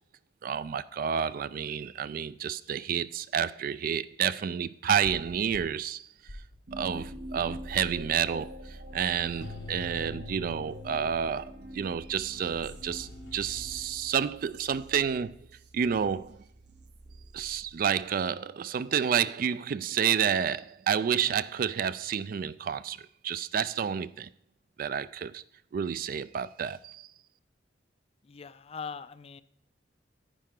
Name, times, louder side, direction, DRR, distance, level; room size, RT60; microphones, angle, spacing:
voice 1, 0.4-6.0 6.7-15.4 15.7-16.4 17.3-24.3 24.8-25.4 25.7-27.1, right 8 dB, 50° right, 0.3 m, -30 dB
sound 1, 5.0-5.6 6.2-7.1 7.5-7.6 9.4-11.6 12.3-14.2, left 2 dB, 90° left, 1.1 m, -45 dB
sound 2, 6.7-18.2, right 1 dB, 70° right, 0.9 m, -45 dB
voice 2, 28.2-29.4, left 5 dB, 35° left, 0.4 m, -41 dB
10.0 x 9.6 x 3.7 m
head